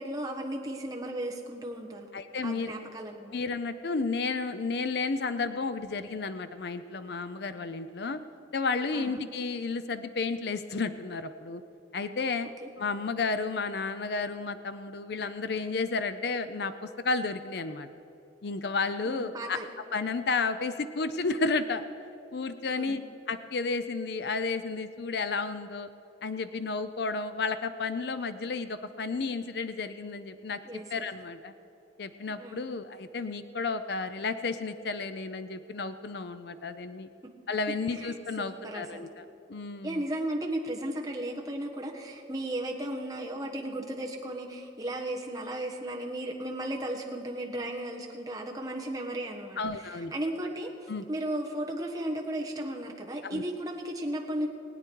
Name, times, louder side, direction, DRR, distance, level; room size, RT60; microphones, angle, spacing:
voice 1, 0.0-2.1 2.4-3.3 8.9-9.2 12.6-12.7 19.0-19.7 22.7-23.0 30.6-31.0 32.3-32.7 37.2-37.3 37.7-39.1 39.8-54.5, right 1 dB, 20° right, 0 dB, 1.2 m, -35 dB
voice 2, 2.1-2.7 3.3-8.2 8.5-11.6 11.9-12.5 12.8-17.9 18.4-19.6 19.9-21.8 22.3-23.0 23.3-25.9 26.2-31.5 32.0-37.1 37.5-39.2 39.5-40.0 49.6-50.1 50.9-51.1 53.2-53.4, left 4 dB, 55° left, 11 dB, 0.5 m, -32 dB
20.5 x 9.1 x 4.6 m, 2.9 s
head